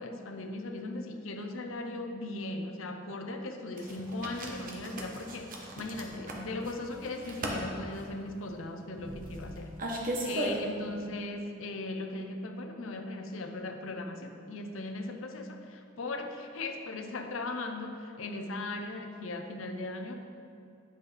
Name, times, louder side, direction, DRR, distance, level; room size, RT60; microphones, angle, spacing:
voice 1, 0.0-20.2, left 2 dB, 90° left, 5 dB, 0.7 m, -38 dB
sound 1, 3.8-10.9, right 1 dB, 45° right, 1.0 m, -37 dB
9.7 x 6.2 x 3.3 m, 2.5 s
head